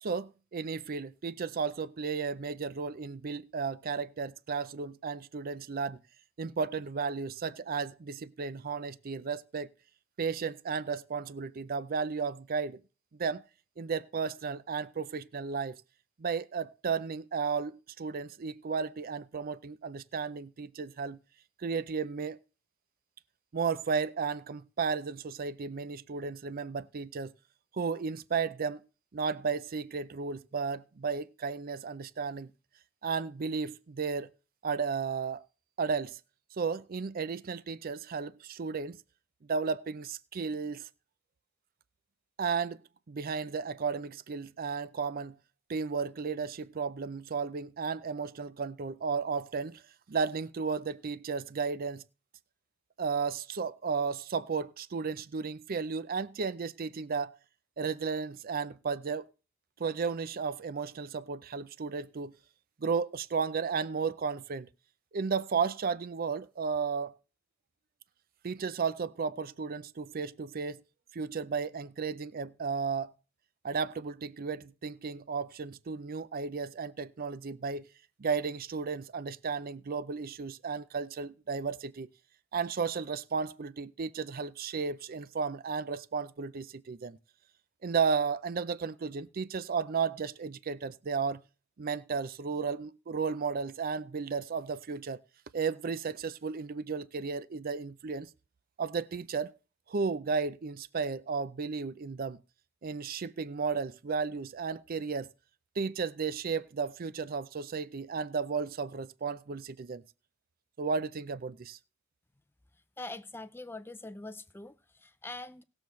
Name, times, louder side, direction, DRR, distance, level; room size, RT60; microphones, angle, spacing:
voice 1, 0.0-6.0 6.4-9.7 10.2-12.8 13.2-13.4 13.8-15.8 16.2-21.2 21.6-22.4 23.5-27.3 27.7-28.8 29.1-32.5 33.0-34.3 34.6-35.4 35.8-36.2 36.6-39.0 39.5-40.9 42.4-42.8 43.1-45.4 45.7-49.8 50.1-52.0 53.0-57.4 57.8-59.3 59.8-62.3 62.8-64.7 65.1-67.1 68.4-70.8 71.1-73.1 73.6-77.9 78.2-82.1 82.5-87.2 87.8-91.4 91.8-95.2 95.5-98.3 98.8-99.5 99.9-102.4 102.8-105.3 105.8-110.0 110.8-111.8, right 5 dB, 45° right, 0.5 m, -34 dB
voice 2, 113.0-115.6, left 2 dB, 10° left, 0.5 m, -43 dB
19.0 x 7.0 x 3.1 m
head